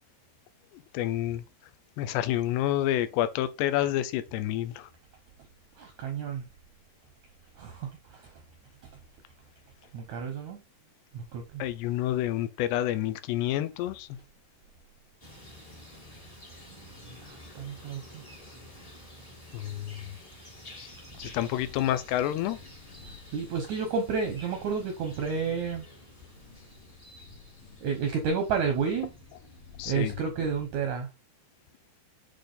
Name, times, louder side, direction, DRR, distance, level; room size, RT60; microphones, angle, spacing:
voice 1, 0.7-1.4 2.0-4.9 11.6-14.1 19.5-20.0 20.8-20.9 21.2-22.6 29.8-30.2, left 13 dB, 85° left, 2.7 m, -29 dB
voice 2, 5.8-6.5 7.6-8.3 8.8-8.9 9.9-10.6 11.1-11.6 17.2-18.2 23.3-25.9 27.8-29.1 29.9-31.1, right 6 dB, 80° right, 1.7 m, -31 dB
sound 1, 15.2-30.2, equal, 30° left, 0.6 m, -51 dB
sound 2, 20.9-30.9, left 3 dB, 65° left, 2.9 m, -52 dB
8.4 x 3.3 x 3.9 m
omnidirectional pair, 4.7 m